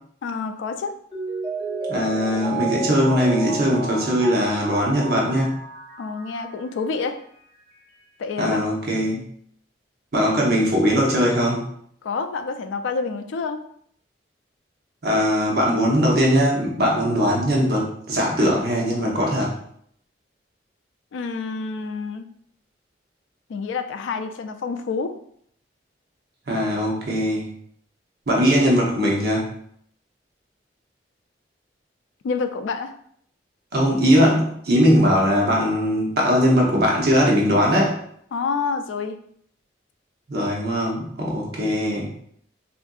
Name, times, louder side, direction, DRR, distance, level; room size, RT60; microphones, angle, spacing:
voice 1, 0.2-0.9 6.0-7.2 8.2-8.7 12.0-13.6 21.1-22.3 23.5-25.2 32.2-32.9 38.3-39.2, left 4 dB, 90° left, 8 dB, 0.3 m, -28 dB
Mallet percussion, 1.1-6.6 7.0-7.1, right 3 dB, 25° left, 0.6 m, -31 dB
voice 2, 1.9-5.6 8.4-9.2 10.1-11.6 15.0-19.5 26.5-27.4 28.3-29.5 33.7-38.0 40.3-42.1, equal, 55° right, -2 dB, 0.7 m, -20 dB
3.6 x 2.5 x 2.3 m, 0.66 s
head